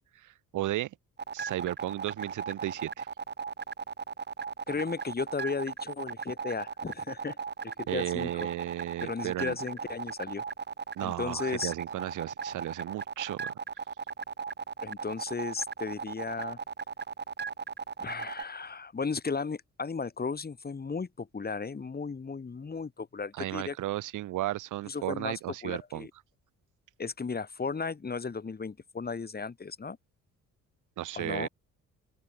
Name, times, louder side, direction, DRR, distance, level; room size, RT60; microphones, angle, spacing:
voice 1, 0.1-0.9 1.3-3.1 7.9-9.5 11.0-13.5 23.4-26.1 31.0-31.5, right 15 dB, 85° right, 2.9 m, -34 dB
sound 1, 1.2-18.4, right 6 dB, 35° right, 2.1 m, -37 dB
voice 2, 4.7-7.4 7.6-8.5 9.0-10.4 11.0-11.7 14.8-16.6 18.0-23.8 24.9-26.1 27.0-30.0 31.2-31.5, left 5 dB, 30° left, 4.1 m, -35 dB
open air
cardioid pair, 90°, 30 cm